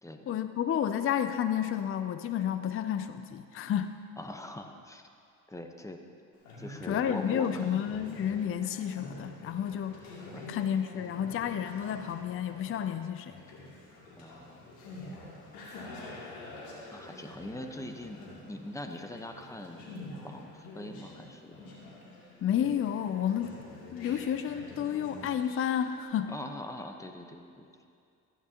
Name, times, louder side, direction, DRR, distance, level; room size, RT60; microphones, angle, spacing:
voice 1, 0.3-4.0 6.9-10.0 10.5-13.4 22.4-23.6 23.9-26.3, left 9 dB, 40° left, 10 dB, 0.5 m, -31 dB
voice 2, 4.2-5.1 5.5-6.0 6.6-7.8 10.3-10.5 14.2-14.6 16.9-21.7 26.3-27.7, left 1 dB, 10° left, 4 dB, 1.0 m, -42 dB
Conversation, 6.3-26.0, left 2 dB, 85° left, 2.8 m, -47 dB
15.0 x 11.0 x 2.9 m, 2.4 s
supercardioid pair, 80°, 35 cm